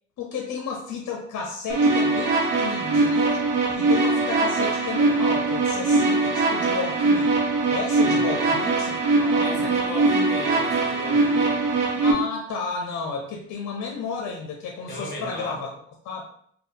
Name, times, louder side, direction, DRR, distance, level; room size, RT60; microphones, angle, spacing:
voice 1, 0.2-3.4 3.7-7.4 7.7-9.7 12.0-15.7 16.0-16.2, left 5 dB, 70° left, 1 dB, 0.7 m, -32 dB
sound 1, 1.7-12.1, right 3 dB, 80° right, 1.0 m, -22 dB
voice 2, 8.0-8.5 9.4-11.6 14.9-15.6, left 1 dB, 35° left, -2 dB, 1.5 m, -36 dB
3.5 x 2.4 x 3.8 m, 0.64 s
cardioid pair, 90°, 30 cm